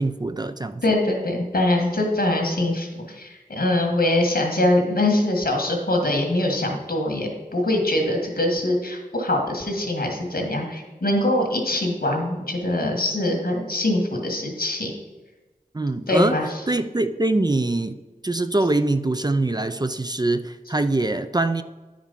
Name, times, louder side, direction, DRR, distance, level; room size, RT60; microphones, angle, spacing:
voice 1, 0.0-0.8 15.7-16.4 16.7-17.9 18.2-21.6, right 2 dB, 25° right, 10 dB, 0.4 m, -23 dB
voice 2, 0.8-2.9 3.1-14.9 16.1-16.7, left 1 dB, 75° left, 1 dB, 1.7 m, -23 dB
10.0 x 5.1 x 5.4 m, 1.2 s
wide cardioid pair, 55°, 16 cm